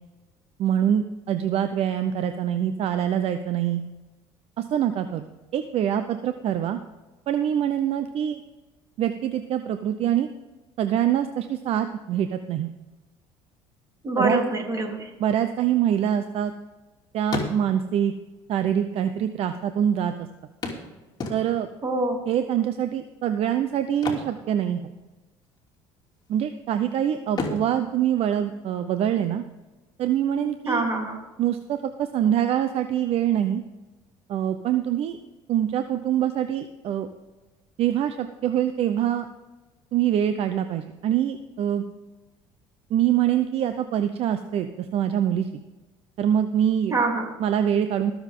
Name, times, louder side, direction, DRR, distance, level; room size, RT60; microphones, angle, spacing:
voice 1, 0.6-3.8 4.6-5.3 5.5-6.8 7.3-8.4 9.0-10.3 10.8-12.7 14.2-14.4 15.2-16.5 17.1-18.1 18.5-20.1 21.3-21.7 22.3-24.9 26.3-29.4 30.0-30.8 31.4-33.6 34.3-35.2 35.5-37.1 37.8-39.3 39.9-41.8 42.9-45.5 46.2-46.9 47.4-48.1, right 10 dB, 55° right, 9 dB, 0.7 m, -24 dB
voice 2, 14.0-15.1 21.8-22.2 30.7-31.2 46.9-47.3, right 2 dB, 30° right, 1 dB, 3.6 m, -25 dB
sound 1, 15.9-16.9 17.2-18.0 19.0-19.1 19.3-19.4 20.6-21.8 23.9-25.2 25.4-25.7 26.2-26.8 27.3-29.0 31.0-31.1 31.6-31.7, left 3 dB, 35° left, 2.9 m, -34 dB
20.5 x 7.2 x 3.7 m, 1.2 s
supercardioid pair, 85°, 12 cm